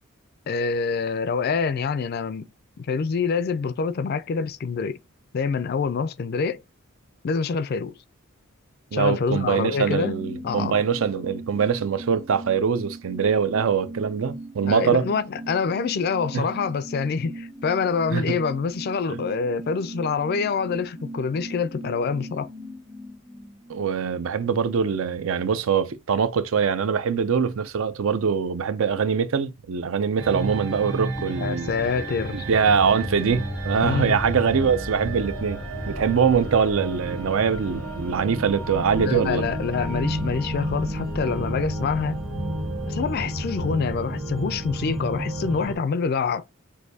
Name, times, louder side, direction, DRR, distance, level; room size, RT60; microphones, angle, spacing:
voice 1, 0.5-2.5 2.8-5.0 5.3-6.6 7.2-8.0 8.9-10.2 10.4-10.7 14.6-22.5 31.2-32.4 33.8-34.2 39.0-42.2 42.9-46.4, left 5 dB, 45° left, 0.3 m, -26 dB
voice 2, 8.9-15.1 16.3-16.5 18.1-18.4 23.7-31.7 32.3-35.6 35.9-39.4, right 6 dB, 65° right, 0.4 m, -23 dB
sound 1, 9.5-24.5 24.8-24.9, right 1 dB, 30° right, 1.0 m, -39 dB
sound 2, 30.2-45.8, right 1 dB, 90° right, 1.9 m, -31 dB
6.2 x 2.6 x 2.7 m
head